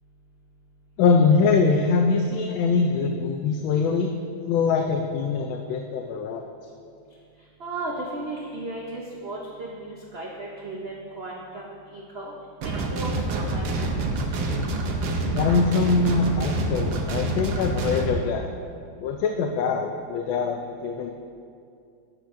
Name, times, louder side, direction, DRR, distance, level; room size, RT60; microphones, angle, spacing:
voice 1, 1.0-4.1 4.5-6.4 15.3-18.5 19.0-21.1, left 4 dB, 90° left, 3 dB, 1.4 m, -23 dB
voice 2, 7.6-12.3 12.6-13.8, right 2 dB, 60° right, -2 dB, 0.6 m, -35 dB
sound 1, 12.6-18.1, right 2 dB, 80° right, 1.6 m, -27 dB
11.5 x 8.1 x 2.6 m, 2.4 s
omnidirectional pair, 2.1 m